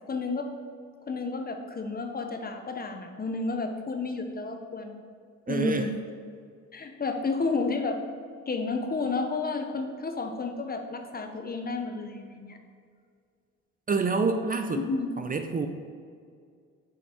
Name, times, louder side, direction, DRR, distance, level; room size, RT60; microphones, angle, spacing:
voice 1, 0.1-0.5 1.1-5.0 5.5-5.9 6.7-8.0 8.5-12.6 14.8-15.2, left 3 dB, 30° left, 5 dB, 0.9 m, -31 dB
voice 2, 5.5-5.9 13.9-14.8 15.2-15.7, right 4 dB, 30° right, 6 dB, 0.6 m, -27 dB
6.6 x 5.9 x 4.5 m, 2.2 s
cardioid pair, 90°, 30 cm